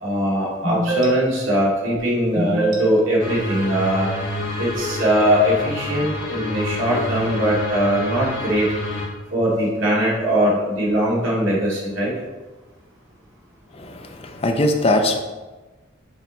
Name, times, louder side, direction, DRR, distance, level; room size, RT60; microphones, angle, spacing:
voice 1, 0.0-4.1 4.6-8.7 9.3-12.1, equal, 80° right, -4 dB, 2.2 m, -20 dB
sound 1, 3.2-9.1, left 1 dB, 65° left, 1.7 m, -28 dB
voice 2, 13.7-15.2, left 1 dB, 30° left, 4 dB, 0.6 m, -21 dB
6.5 x 4.6 x 4.0 m, 1.2 s
head